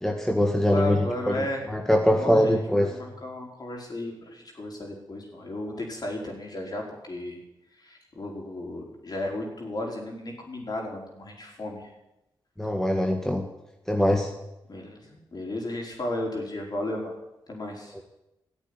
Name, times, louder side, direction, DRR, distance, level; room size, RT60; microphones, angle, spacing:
voice 1, 0.0-3.0 12.6-13.5 13.9-14.3 17.9-18.0, left 1 dB, 5° left, 2 dB, 2.0 m, -23 dB
voice 2, 0.7-1.7 2.1-7.4 7.8-11.9 14.7-17.2 17.5-17.9, left 1 dB, 50° left, 0 dB, 5.1 m, -34 dB
14.5 x 8.2 x 9.9 m, 0.91 s
cardioid pair, 50°, 9 cm